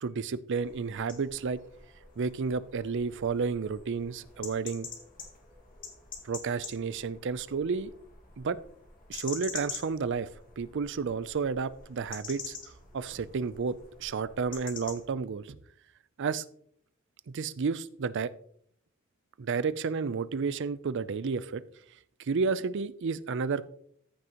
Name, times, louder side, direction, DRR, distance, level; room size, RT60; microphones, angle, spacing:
voice 1, 0.0-1.6 2.2-4.9 6.2-7.9 8.4-8.6 9.1-10.3 10.6-12.5 12.9-15.6 16.2-16.4 17.3-18.3 19.4-21.6 22.2-23.7, right 5 dB, 60° right, 16 dB, 0.5 m, -31 dB
sound 1, 0.5-15.1, left 5 dB, 45° left, 2.0 m, -46 dB
14.5 x 6.2 x 3.0 m, 0.64 s
head